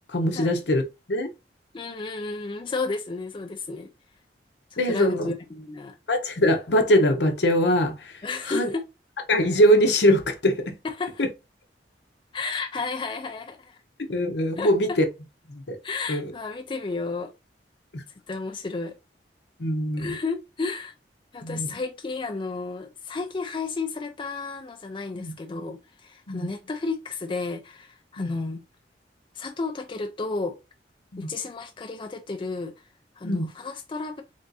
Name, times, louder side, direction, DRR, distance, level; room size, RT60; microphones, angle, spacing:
voice 1, 0.1-0.8 1.1-1.3 4.8-5.3 6.1-8.2 8.5-8.7 9.3-10.6 11.2-11.3 14.1-15.0 15.5-15.8 16.1-16.2 17.9-18.0 19.6-20.1 21.4-21.7 25.1-25.3 26.3-26.5 28.2-28.3 31.1-31.3 33.2-33.5, equal, 70° left, 0.8 m, -22 dB
voice 2, 1.7-3.9 4.7-6.0 8.2-8.9 10.8-11.2 12.3-13.8 14.6-15.0 15.8-17.3 18.3-18.9 20.0-20.9 21.3-28.6 29.3-30.6 31.2-32.8 33.2-34.2, left 3 dB, 30° left, 0.4 m, -32 dB
3.5 x 2.6 x 4.0 m
head